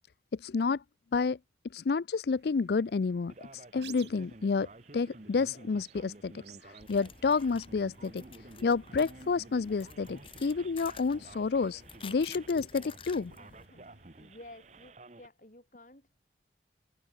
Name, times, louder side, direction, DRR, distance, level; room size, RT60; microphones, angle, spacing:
voice 1, 0.4-0.8 1.1-1.4 1.7-4.7 4.9-6.3 6.7-8.2 8.6-13.3, left 4 dB, 65° left, 0.4 m, -30 dB
sound 1, 2.3-14.9, right 7 dB, 80° right, 6.1 m, -59 dB
Male speech man speaking, 3.3-15.3, right 2 dB, 40° right, 1.1 m, -52 dB
sound 2, 6.8-13.7, left 6 dB, 30° left, 2.7 m, -51 dB
voice 2, 13.4-16.2, left 1 dB, 45° left, 3.7 m, -54 dB
head